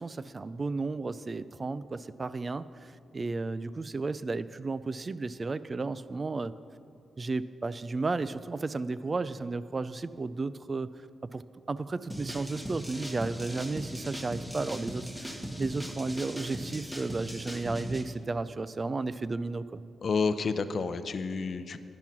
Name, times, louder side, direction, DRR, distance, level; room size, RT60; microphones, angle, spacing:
voice 1, 0.0-6.6 7.2-10.9 11.3-11.4 11.7-19.8, right 3 dB, 35° right, 16 dB, 0.4 m, -33 dB
sound 1, 12.1-18.0, equal, 5° right, 1.6 m, -39 dB
voice 2, 20.0-21.8, left 4 dB, 55° left, 12 dB, 0.6 m, -30 dB
10.5 x 10.5 x 6.0 m, 2.6 s
cardioid pair, 65°, 0 cm